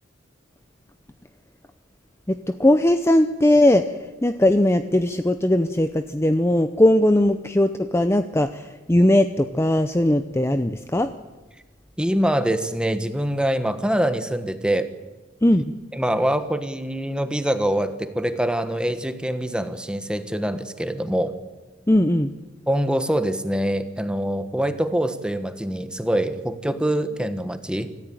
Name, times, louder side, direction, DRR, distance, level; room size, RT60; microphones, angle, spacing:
voice 1, 2.3-3.9 4.2-11.1 15.4-15.6 21.9-22.3, left 1 dB, 15° left, 9 dB, 0.7 m, -19 dB
voice 2, 12.0-14.9 15.9-21.3 22.7-27.9, right 1 dB, 5° right, 10 dB, 1.3 m, -24 dB
26.0 x 14.5 x 9.2 m, 1.2 s
head